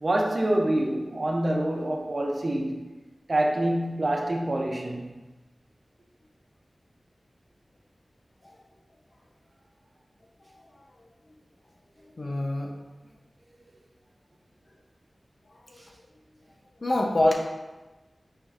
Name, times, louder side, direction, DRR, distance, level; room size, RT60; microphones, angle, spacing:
voice 1, 0.0-2.8 3.3-5.1, right 1 dB, 55° right, 2 dB, 0.5 m, -26 dB
voice 2, 10.4-11.1 12.2-12.7 15.5-15.8 16.8-17.3, left 1 dB, 60° left, 0 dB, 0.6 m, -27 dB
4.4 x 3.0 x 2.4 m, 1.1 s
wide cardioid pair, 55°, 0 cm